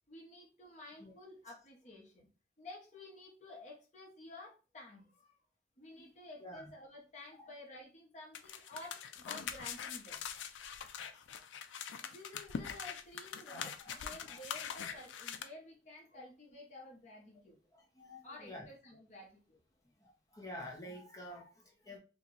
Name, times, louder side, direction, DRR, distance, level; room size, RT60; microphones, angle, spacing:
voice 1, 0.1-2.3 2.6-5.3 5.8-10.2 12.0-17.6 18.2-19.6, left 2 dB, 40° left, -1 dB, 1.1 m, -52 dB
voice 2, 6.4-6.7 7.4-7.5 13.4-14.4 17.7-18.7 20.0-22.0, left 1 dB, 20° left, -1 dB, 0.8 m, -50 dB
sound 1, 8.3-15.4, left 7 dB, 85° left, 0.4 m, -43 dB
2.9 x 2.4 x 3.9 m, 0.34 s
head